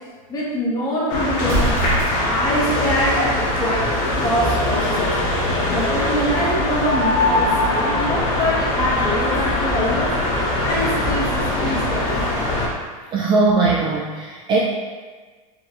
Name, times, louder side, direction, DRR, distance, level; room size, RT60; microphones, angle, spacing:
voice 1, 0.3-1.8 2.2-5.2 5.7-10.1 10.6-12.2, left 1 dB, 20° left, -6 dB, 1.1 m, -24 dB
sound 1, 1.1-12.7, left 1 dB, 55° left, 1.1 m, -21 dB
Explosion, 1.4-2.5, right 2 dB, 65° right, 1.1 m, -24 dB
voice 2, 13.1-14.6, right 3 dB, 25° right, -3 dB, 0.3 m, -19 dB
4.5 x 3.0 x 2.4 m, 1.4 s
supercardioid pair, 140°, 18 cm